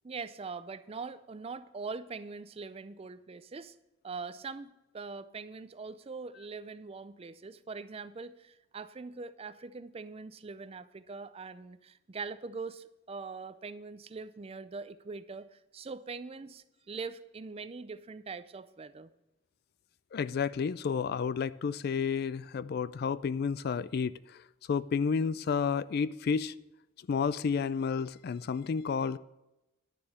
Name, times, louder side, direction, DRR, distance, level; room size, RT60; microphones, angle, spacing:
voice 1, 0.0-3.8 4.0-19.1, right 4 dB, 30° right, 14 dB, 0.4 m, -42 dB
voice 2, 20.1-24.4 24.7-26.5 27.1-29.2, left 6 dB, 50° left, 18 dB, 0.3 m, -31 dB
11.0 x 7.0 x 6.4 m, 0.95 s
head